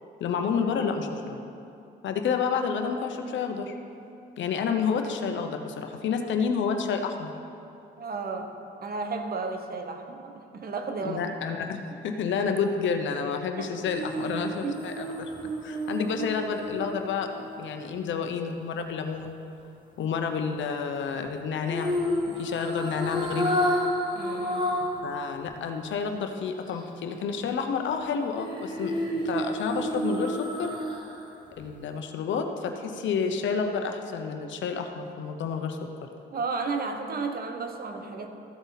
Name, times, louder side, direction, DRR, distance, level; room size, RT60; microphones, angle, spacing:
voice 1, 0.2-1.4 2.0-3.7 4.4-7.3 11.0-15.3 15.6-19.4 20.0-21.9 22.3-23.6 25.0-30.7 31.6-35.8, left 6 dB, 70° left, 5 dB, 1.0 m, -30 dB
voice 2, 8.0-11.4 13.5-13.7 14.6-14.9 24.1-24.7 36.3-38.3, right 4 dB, 50° right, 5 dB, 1.2 m, -33 dB
sound 1, 13.9-18.1 21.7-25.1 25.4-25.5 28.4-31.2 31.6-31.7, equal, 25° right, 1.8 m, -30 dB
14.0 x 8.0 x 4.1 m, 2.7 s
cardioid pair, 90°, 20 cm